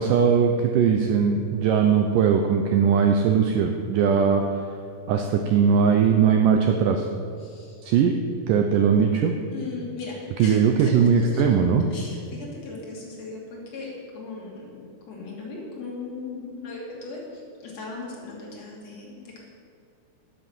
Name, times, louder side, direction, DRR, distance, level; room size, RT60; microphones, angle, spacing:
voice 1, 0.0-4.7 5.1-7.1 7.9-9.3 10.4-11.9, right 6 dB, 85° right, 4 dB, 1.9 m, -20 dB
voice 2, 7.4-7.9 9.5-11.4 11.9-19.4, left 3 dB, 45° left, -4 dB, 3.4 m, -38 dB
11.5 x 8.4 x 7.2 m, 2.4 s
omnidirectional pair, 4.6 m